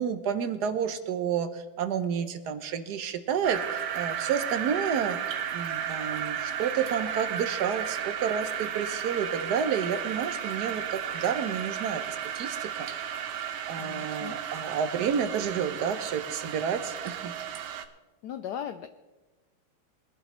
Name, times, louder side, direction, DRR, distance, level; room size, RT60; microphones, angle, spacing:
voice 1, 0.0-5.2 5.5-12.9 13.7-17.3, right 7 dB, 65° right, 10 dB, 1.1 m, -30 dB
sound 1, 3.4-17.8, right 9 dB, 85° right, 1.7 m, -34 dB
voice 2, 13.8-14.4 18.2-18.9, left 9 dB, 90° left, 10 dB, 0.9 m, -37 dB
21.5 x 11.5 x 3.1 m, 1.1 s
omnidirectional pair, 2.3 m